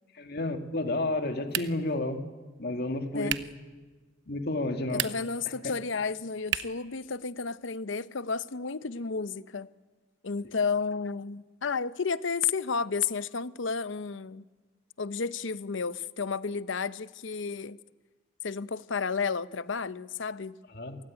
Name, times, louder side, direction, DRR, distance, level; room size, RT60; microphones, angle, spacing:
voice 1, 0.2-2.2 2.6-3.3 4.3-5.0 5.5-5.6 20.7-21.0, left 2 dB, 55° left, 2.2 m, -31 dB
sound 1, 1.5-2.0 3.3-3.6 4.8-5.4 6.5-6.9, right 10 dB, 65° right, 0.9 m, -33 dB
voice 2, 4.9-9.7 10.2-14.4 15.0-17.8 18.4-20.6, left 5 dB, 75° left, 0.7 m, -32 dB
27.0 x 17.0 x 9.8 m
head